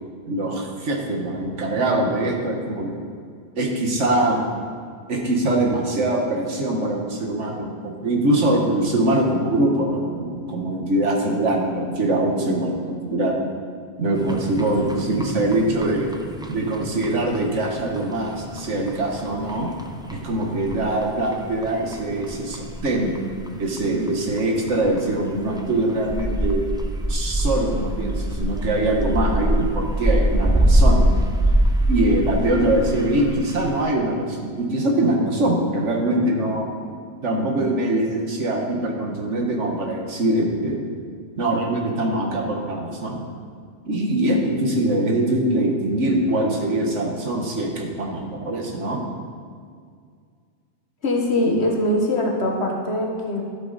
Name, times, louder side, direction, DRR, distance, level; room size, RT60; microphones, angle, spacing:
voice 1, 0.3-3.0 3.6-4.4 5.1-13.4 14.0-16.1 16.5-19.7 20.1-23.1 23.6-26.6 27.1-31.0 31.9-36.7 37.2-40.9 41.4-43.2 43.8-49.0, right 1 dB, 85° right, 1 dB, 1.7 m, -23 dB
sound 1, 14.1-33.8, right 1 dB, 5° right, 0.5 m, -25 dB
voice 2, 51.0-53.4, left 1 dB, 65° left, 1 dB, 1.6 m, -22 dB
12.5 x 8.3 x 4.1 m, 2.1 s
omnidirectional pair, 1.2 m